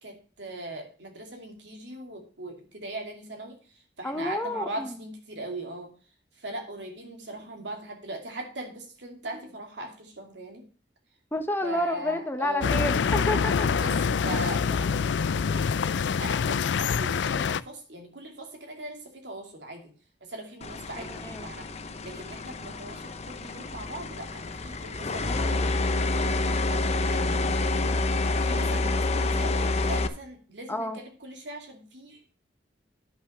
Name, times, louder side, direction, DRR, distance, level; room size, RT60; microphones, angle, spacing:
voice 1, 0.0-3.6 4.0-5.9 6.4-10.6 11.6-12.8 13.7-19.9 20.2-21.7 22.0-25.8 26.2-27.8 28.4-32.3, right 1 dB, 80° right, 2 dB, 2.7 m, -40 dB
voice 2, 4.0-5.0 11.3-13.7 21.0-21.5 30.7-31.0, left 1 dB, 10° left, 6 dB, 1.1 m, -30 dB
sound 1, 12.6-17.6, left 6 dB, 80° left, 0.4 m, -25 dB
sound 2, 20.6-30.1, left 2 dB, 40° left, 0.7 m, -28 dB
sound 3, 25.2-27.7, right 5 dB, 35° right, 3.1 m, -54 dB
10.0 x 6.0 x 5.7 m, 0.38 s
head